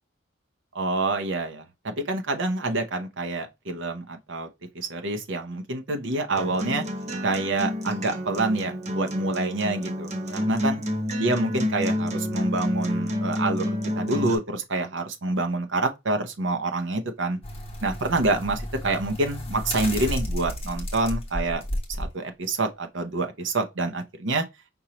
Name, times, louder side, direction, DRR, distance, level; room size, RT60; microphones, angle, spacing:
voice 1, 0.7-4.5 4.7-6.8 7.2-10.8 11.2-17.4 17.8-21.6 22.0-24.4, right 2 dB, 65° right, 0.8 m, -27 dB
Acoustic guitar, 6.4-14.4, left 1 dB, 35° right, 0.8 m, -29 dB
sound 1, 17.4-22.1 22.5-22.6, left 1 dB, 30° left, 1.3 m, -32 dB
5.3 x 2.9 x 2.9 m
head